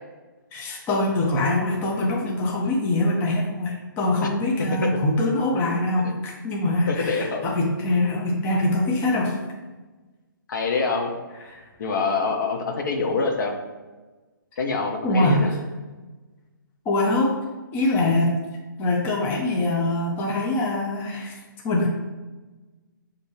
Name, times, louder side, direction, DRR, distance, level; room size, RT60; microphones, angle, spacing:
voice 1, 0.5-9.3 11.5-11.6 15.0-15.4 16.9-17.4 17.7-18.3 18.8-21.4 21.6-21.9, left 2 dB, 15° left, -3 dB, 0.6 m, -23 dB
voice 2, 6.9-7.4 10.5-11.1 11.8-13.5 14.6-15.5, left 4 dB, 60° left, 2 dB, 0.8 m, -25 dB
6.9 x 2.7 x 2.7 m, 1.2 s
hypercardioid pair, 145°, 11 cm